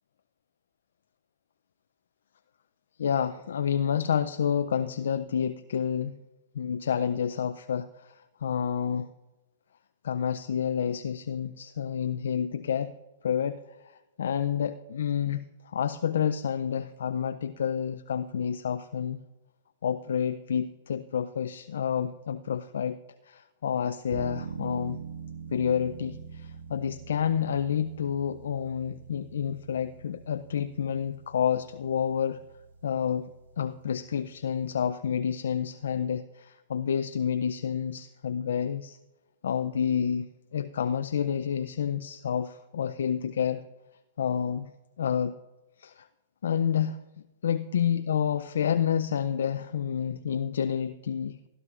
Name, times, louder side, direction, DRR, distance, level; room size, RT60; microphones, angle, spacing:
voice 1, 3.0-6.1 6.5-9.1 10.0-12.9 13.2-19.2 19.8-23.0 23.2-25.0 25.5-32.4 32.8-33.3 33.6-39.0 39.4-43.6 44.2-44.7 45.0-45.4 45.8-46.1 46.4-47.0 47.4-51.5, left 8 dB, 75° left, 12 dB, 0.5 m, -29 dB
sound 1, 24.1-34.9, right 5 dB, 75° right, 1.6 m, -44 dB
19.5 x 12.0 x 2.5 m, 1.1 s
hypercardioid pair, 120°, 0 cm